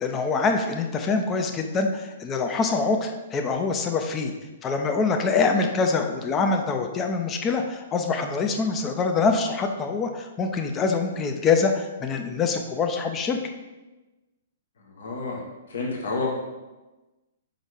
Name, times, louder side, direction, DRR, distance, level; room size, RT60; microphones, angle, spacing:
voice 1, 0.0-4.3 4.6-13.4, left 4 dB, 20° left, 4 dB, 0.6 m, -25 dB
voice 2, 14.9-15.4 15.7-16.3, left 3 dB, 55° left, -2 dB, 1.3 m, -29 dB
5.3 x 4.0 x 4.9 m, 1.1 s
figure-of-eight pair, 115°, 0 cm